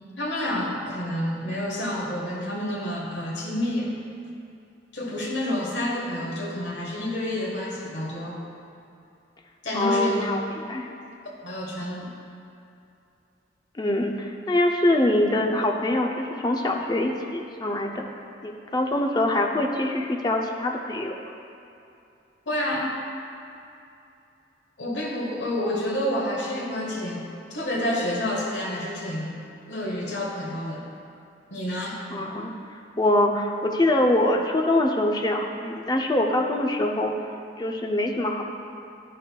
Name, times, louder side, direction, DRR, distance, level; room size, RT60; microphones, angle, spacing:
voice 1, 0.2-3.9 4.9-8.4 9.6-10.3 11.4-12.1 22.5-22.9 24.8-29.3 29.7-30.9 31.5-32.0, left 1 dB, 70° left, -2 dB, 1.3 m, -29 dB
voice 2, 9.7-10.9 13.8-18.0 18.4-21.1 32.1-32.5 33.0-37.1 37.6-38.5, left 1 dB, 20° left, 2 dB, 0.5 m, -24 dB
11.0 x 6.5 x 2.3 m, 2.7 s
head